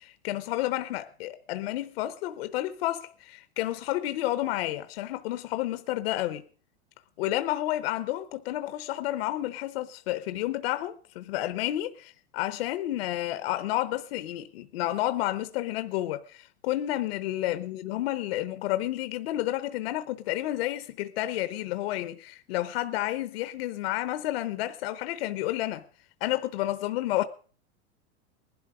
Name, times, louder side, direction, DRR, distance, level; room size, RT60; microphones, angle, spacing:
voice 1, 0.0-6.4 7.2-25.8 26.2-27.2, left 15 dB, 60° left, 0.9 m, -30 dB
19.5 x 11.5 x 4.9 m
supercardioid pair, 155°, 34 cm